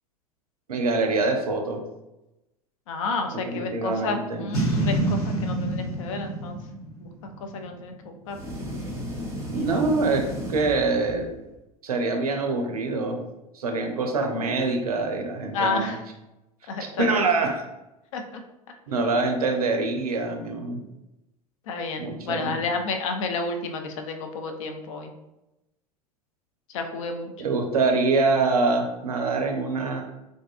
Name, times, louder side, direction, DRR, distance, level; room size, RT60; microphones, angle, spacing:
voice 1, 0.7-1.8 3.5-4.4 9.5-11.3 11.8-13.2 13.5-16.0 17.0-17.6 18.9-20.8 22.0-22.6 27.4-30.0, right 3 dB, 75° right, 4 dB, 0.5 m, -25 dB
voice 2, 2.9-6.6 7.0-7.1 7.5-7.9 8.3-8.4 9.5-9.9 15.5-16.0 16.7-17.3 18.1-18.2 18.9-19.1 21.7-25.1 26.7-27.3, left 3 dB, 60° left, 5 dB, 0.4 m, -31 dB
Boom, 4.5-7.9, right 1 dB, 75° left, 0.8 m, -27 dB
sound 1, 8.3-11.4, equal, 15° right, 0.7 m, -34 dB
2.5 x 2.3 x 2.3 m, 0.94 s
figure-of-eight pair, 80°, 19 cm